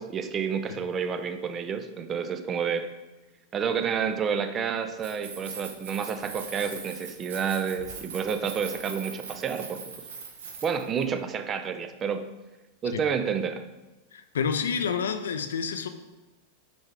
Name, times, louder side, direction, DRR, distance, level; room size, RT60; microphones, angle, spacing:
voice 1, 0.0-2.9 3.5-9.8 10.6-12.3 12.8-13.7, right 6 dB, 25° right, 9 dB, 0.4 m, -29 dB
Keys jangling, 4.9-11.0, right 5 dB, 60° right, 0.9 m, -41 dB
voice 2, 14.1-15.9, left 6 dB, 65° left, 9 dB, 0.4 m, -29 dB
6.2 x 4.5 x 3.6 m, 1.1 s
figure-of-eight pair, 90°, 0 cm